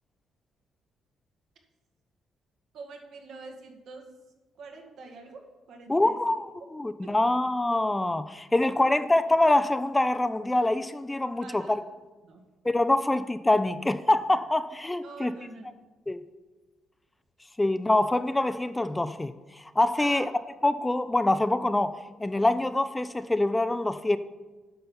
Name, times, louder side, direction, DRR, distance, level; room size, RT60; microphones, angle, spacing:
voice 1, 2.7-4.1 4.6-6.2 7.0-7.2 8.8-9.0 11.4-11.8 12.2-12.4 15.0-15.9 20.0-20.3, right 3 dB, 75° right, 2 dB, 1.9 m, -45 dB
voice 2, 5.9-11.8 12.6-15.3 16.1-16.2 17.6-20.3 20.6-21.9 22.2-24.2, left 2 dB, 15° left, 12 dB, 0.4 m, -25 dB
9.5 x 5.5 x 7.1 m, 1.3 s
cardioid pair, 90°, 0 cm